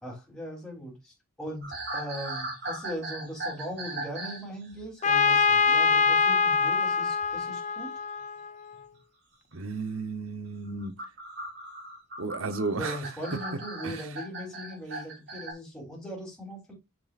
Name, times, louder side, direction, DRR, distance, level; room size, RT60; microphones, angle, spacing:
voice 1, 0.0-7.9 12.7-16.7, equal, 5° left, 3.3 m, -39 dB
sound 1, 1.6-4.5 4.7-5.0 7.2-7.4 8.7-8.8 10.7-15.5, right 2 dB, 50° right, 3.9 m, -38 dB
Trumpet, 5.0-8.8, left 5 dB, 35° left, 0.5 m, -24 dB
voice 2, 9.5-11.0 12.2-13.0 13.8-14.2, right 3 dB, 70° right, 0.9 m, -33 dB
7.7 x 7.4 x 2.5 m
head